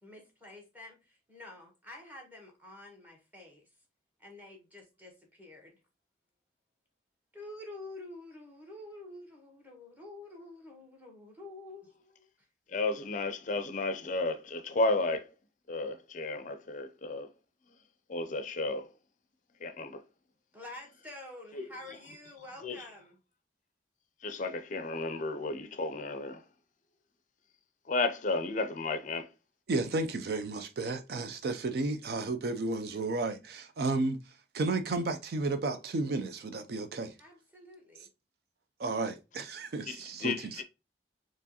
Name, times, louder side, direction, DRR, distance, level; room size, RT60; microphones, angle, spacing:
voice 1, 0.0-3.7 4.2-5.7 7.3-12.3 20.5-23.2 37.2-38.1, left 2 dB, 10° right, 1.3 m, -48 dB
voice 2, 12.7-15.3 15.7-17.3 18.1-18.9 19.6-20.0 21.6-21.7 22.6-22.8 24.2-26.4 27.9-29.3 39.9-40.6, left 3 dB, 45° left, 0.5 m, -33 dB
voice 3, 29.7-34.2 34.5-37.1 38.8-40.6, right 3 dB, 60° right, 0.4 m, -33 dB
4.6 x 3.0 x 2.8 m
head